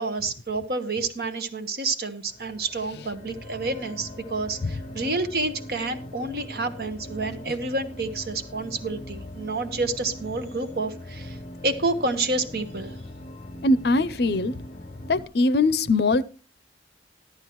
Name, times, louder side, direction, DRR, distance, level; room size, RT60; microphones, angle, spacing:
voice 1, 0.0-11.4 11.6-12.9, right 3 dB, 55° right, 7 dB, 1.2 m, -29 dB
sound 1, 2.3-15.2, left 1 dB, 40° left, 0.9 m, -41 dB
voice 2, 13.6-14.6 15.1-16.2, left 2 dB, 65° left, 16 dB, 0.6 m, -21 dB
14.0 x 12.0 x 3.1 m, 0.35 s
head